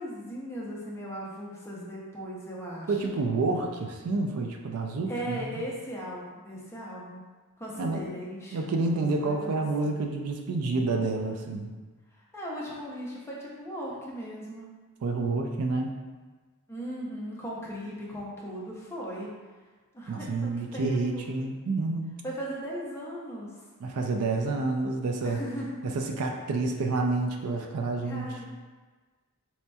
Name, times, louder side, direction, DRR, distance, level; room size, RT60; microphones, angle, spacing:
voice 1, 0.0-3.2 5.1-7.2 7.6-10.0 12.3-14.7 16.7-19.3 19.9-21.3 22.2-23.5 25.2-25.8 28.0-28.4, equal, 10° left, -5 dB, 0.6 m, -38 dB
voice 2, 2.9-5.6 7.8-8.0 8.5-11.7 15.0-15.9 20.1-22.2 23.8-25.4 26.2-28.3, right 3 dB, 70° right, 2 dB, 0.4 m, -29 dB
4.2 x 2.7 x 2.2 m, 1.3 s
head